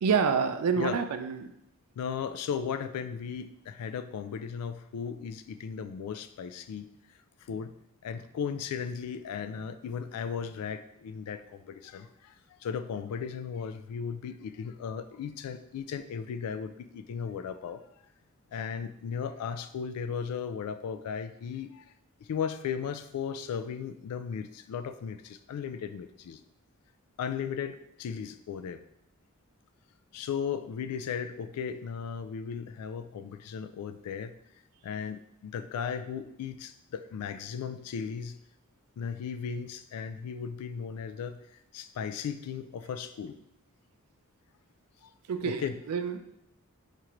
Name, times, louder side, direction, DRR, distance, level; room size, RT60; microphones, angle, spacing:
voice 1, 0.0-1.5 45.3-46.2, right 6 dB, 85° right, 8 dB, 0.4 m, -28 dB
voice 2, 2.0-6.9 7.4-7.7 8.0-17.8 18.5-21.9 22.3-26.4 27.2-28.8 30.1-34.3 34.8-38.4 39.0-43.4 45.0-45.1 45.4-45.8, left 7 dB, 90° left, 11 dB, 0.3 m, -36 dB
4.4 x 2.5 x 2.9 m, 0.79 s
head